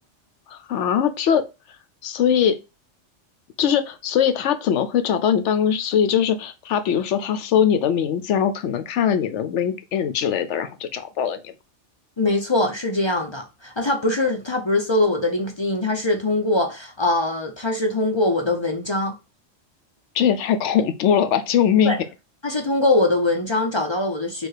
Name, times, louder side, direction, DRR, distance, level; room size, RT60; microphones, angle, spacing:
voice 1, 0.5-1.4 2.0-2.6 3.6-11.5 20.1-22.0, left 8 dB, 75° left, 0.9 m, -21 dB
voice 2, 12.2-19.1 21.8-22.0 22.4-24.5, left 2 dB, 35° left, 0.4 m, -22 dB
4.6 x 2.4 x 4.8 m
omnidirectional pair, 1.3 m